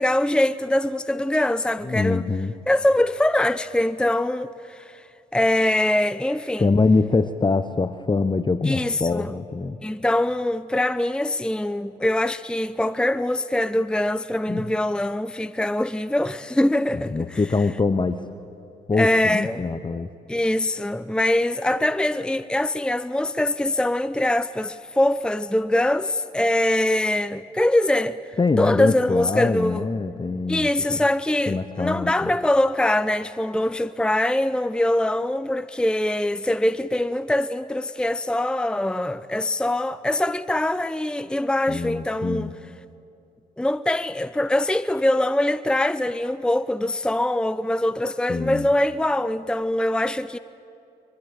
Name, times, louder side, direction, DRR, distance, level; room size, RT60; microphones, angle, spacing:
voice 1, 0.0-2.3 2.7-5.0 5.3-6.7 8.6-9.3 9.8-17.4 19.0-19.7 20.3-29.9 30.5-42.5 43.6-50.4, left 1 dB, 5° left, 0.7 m, -23 dB
voice 2, 1.9-2.5 6.6-9.8 14.5-14.7 16.9-18.2 18.9-20.1 28.4-31.0 31.5-32.3 41.7-42.5 48.3-48.7, left 3 dB, 25° left, 1.0 m, -24 dB
24.0 x 21.5 x 8.9 m
hypercardioid pair, 40°, 19 cm